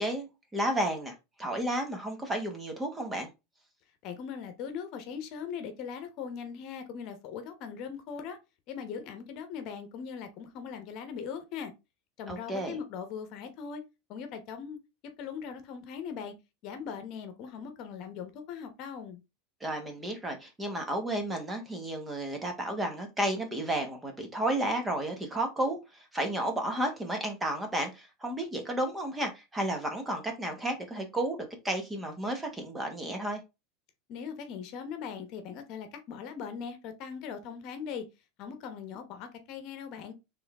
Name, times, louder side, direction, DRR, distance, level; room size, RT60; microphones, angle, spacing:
voice 1, 0.0-3.3 12.3-12.8 19.6-33.4, right 1 dB, 10° right, 1.2 m, -32 dB
voice 2, 4.0-8.4 8.7-11.7 12.2-13.8 14.1-14.8 15.2-16.3 16.6-19.2 34.1-38.1 38.4-40.1, left 7 dB, 50° left, 1.0 m, -40 dB
4.3 x 3.4 x 3.5 m
supercardioid pair, 140°, 0 cm